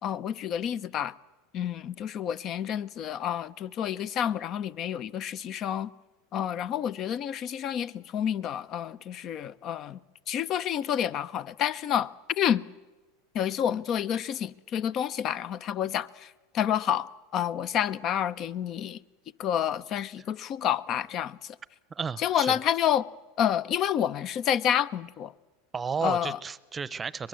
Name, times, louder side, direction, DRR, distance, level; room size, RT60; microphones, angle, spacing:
voice 1, 0.0-1.1 1.5-5.9 6.3-10.0 10.3-12.6 13.3-19.0 19.4-21.6 22.2-23.1 23.4-25.3 26.0-26.4, left 9 dB, 45° left, 0.9 m, -29 dB
voice 2, 21.9-22.6 25.7-27.3, right 6 dB, 20° right, 0.8 m, -33 dB
23.0 x 21.5 x 7.8 m
hypercardioid pair, 105°, 0 cm